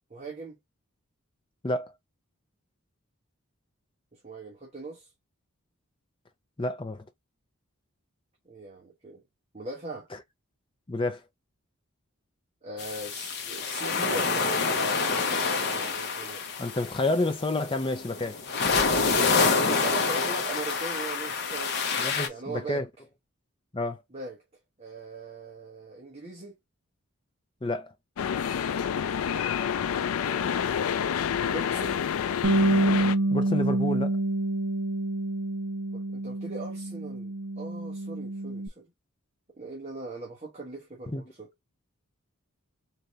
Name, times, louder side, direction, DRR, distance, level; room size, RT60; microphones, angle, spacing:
voice 1, 0.1-0.6 4.1-5.1 8.4-9.2 9.5-10.1 12.6-16.4 19.4-21.8 22.3-22.8 24.1-24.4 24.8-26.6 30.2-32.0 35.9-38.9 39.6-41.5, right 3 dB, 30° right, 1.1 m, -40 dB
voice 2, 6.6-7.0 10.9-11.2 16.6-18.4 22.0-22.8 23.7-24.0 27.6-27.9 33.3-34.2 41.1-41.2, left 2 dB, 25° left, 0.6 m, -29 dB
sound 1, 12.8-22.3, left 4 dB, 50° left, 0.8 m, -27 dB
sound 2, 28.2-33.2, left 8 dB, 75° left, 0.4 m, -28 dB
Bass guitar, 32.4-38.7, right 2 dB, 60° right, 0.7 m, -27 dB
3.9 x 2.8 x 3.2 m
head